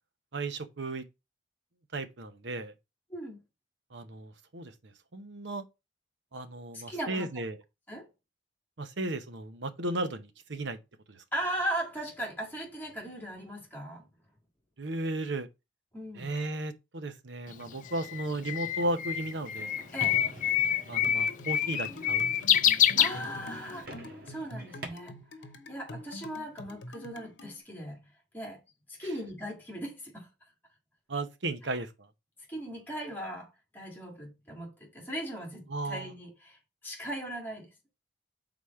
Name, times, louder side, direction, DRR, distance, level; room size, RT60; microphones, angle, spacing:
voice 1, 0.3-1.0 1.9-2.7 3.9-4.7 5.1-5.6 6.3-7.6 8.8-10.8 11.1-11.2 14.8-15.5 16.1-19.8 20.9-22.2 31.1-31.9 35.7-36.1, right 2 dB, 70° right, 0.9 m, -35 dB
voice 2, 6.7-7.4 7.9-8.1 11.3-14.1 15.9-16.3 19.9-20.2 23.0-23.9 24.3-25.2 25.7-28.6 28.9-30.3 31.6-31.7 32.5-36.6 36.8-37.7, right 1 dB, 10° left, 2.0 m, -38 dB
Bird, 17.5-23.8, left 10 dB, 40° left, 0.4 m, -27 dB
sound 1, 19.5-24.9, right 2 dB, 55° right, 1.7 m, -46 dB
sound 2, 21.0-27.6, left 1 dB, 65° left, 0.9 m, -46 dB
4.9 x 4.0 x 5.7 m
head